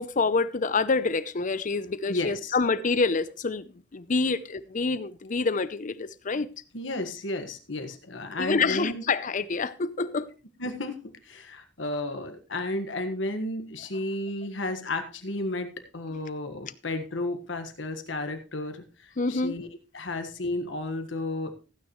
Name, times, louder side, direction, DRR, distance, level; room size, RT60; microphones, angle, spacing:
voice 1, 0.0-3.6 3.9-6.5 8.4-10.3 19.2-19.5, left 4 dB, 45° left, 0.6 m, -27 dB
voice 2, 2.1-2.6 6.7-9.0 10.6-19.7 19.9-21.5, left 2 dB, 80° left, 1.6 m, -33 dB
15.5 x 9.4 x 3.1 m
head